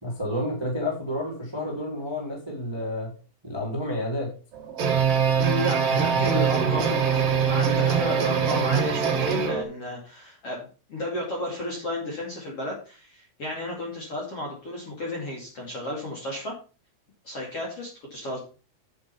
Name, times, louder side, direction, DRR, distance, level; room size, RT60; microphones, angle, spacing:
voice 1, 0.0-3.1 3.4-4.3 6.1-6.3, left 1 dB, 5° right, -2 dB, 2.1 m, -30 dB
sound 1, 4.5-9.6, right 7 dB, 55° right, 1.6 m, -23 dB
voice 2, 5.4-16.5 17.2-18.4, left 1 dB, 40° left, -3 dB, 2.6 m, -33 dB
8.0 x 7.5 x 5.6 m, 0.36 s
omnidirectional pair, 5.5 m